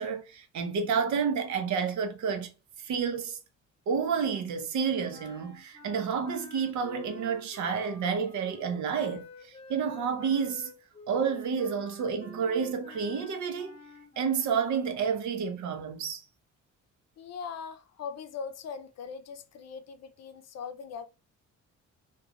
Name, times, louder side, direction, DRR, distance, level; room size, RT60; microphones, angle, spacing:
voice 1, 0.0-2.5 2.8-3.4 3.9-10.7 11.1-13.8 14.2-16.2, right 6 dB, 70° right, 0.7 m, -30 dB
sound 1, 5.1-14.7, left 2 dB, 20° left, 1.0 m, -49 dB
voice 2, 17.2-21.1, left 6 dB, 60° left, 0.6 m, -40 dB
2.4 x 2.3 x 3.9 m
cardioid pair, 90°, 30 cm